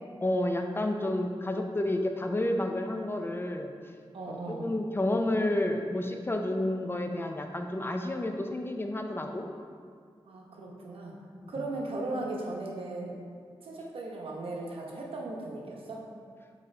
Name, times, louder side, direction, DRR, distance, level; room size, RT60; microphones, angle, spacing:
voice 1, 0.2-3.7 4.3-9.5 11.4-11.5, left 1 dB, 25° left, 4 dB, 0.6 m, -30 dB
voice 2, 4.1-4.7 10.2-11.2 11.5-13.2 13.6-16.1, right 2 dB, 85° right, -2 dB, 1.0 m, -37 dB
6.2 x 4.1 x 4.4 m, 2.1 s
wide cardioid pair, 80°, 9 cm